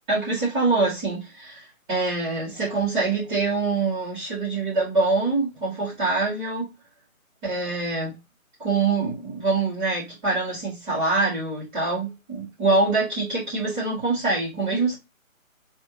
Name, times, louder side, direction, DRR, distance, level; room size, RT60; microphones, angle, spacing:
voice 1, 0.1-6.7 7.4-8.2 8.6-15.0, right 3 dB, 15° right, 2.7 m, -25 dB
4.4 x 3.5 x 2.9 m
hypercardioid pair, 165°, 42 cm